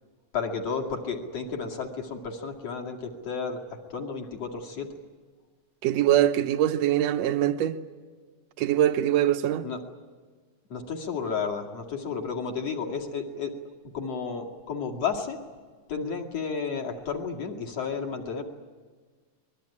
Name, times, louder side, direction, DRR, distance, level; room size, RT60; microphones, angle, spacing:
voice 1, 0.3-3.6 3.9-4.9 9.6-9.8 10.7-13.5 13.9-15.4 15.9-18.4, left 5 dB, 55° left, 3.2 m, -32 dB
voice 2, 5.8-7.8 8.6-9.7, right 12 dB, 70° right, 2.0 m, -23 dB
24.5 x 21.0 x 9.7 m
omnidirectional pair, 3.6 m